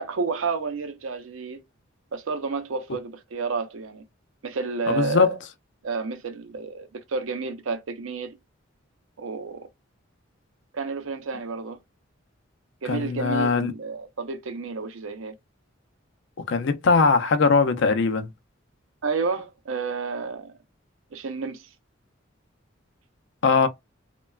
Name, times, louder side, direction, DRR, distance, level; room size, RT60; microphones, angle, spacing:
voice 1, 0.0-1.6 2.1-4.0 4.4-5.4 5.8-8.3 9.2-9.7 10.7-11.8 12.8-15.3 19.0-20.5 21.1-21.7, right 4 dB, 80° right, 0.6 m, -30 dB
voice 2, 4.9-5.3 12.9-13.7 16.5-18.3 23.4-23.7, left 4 dB, 60° left, 0.5 m, -20 dB
3.1 x 2.2 x 2.2 m
head